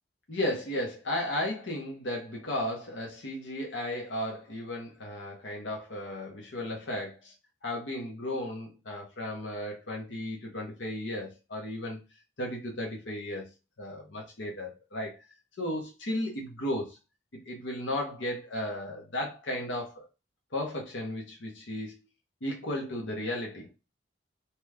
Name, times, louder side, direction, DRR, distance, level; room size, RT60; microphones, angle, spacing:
voice 1, 0.3-7.3 7.6-12.0 12.4-13.5 13.8-15.2 15.6-17.0 17.4-20.1 20.5-22.0 22.4-23.7, left 1 dB, 80° left, 0.9 m, -34 dB
2.9 x 2.3 x 3.3 m
head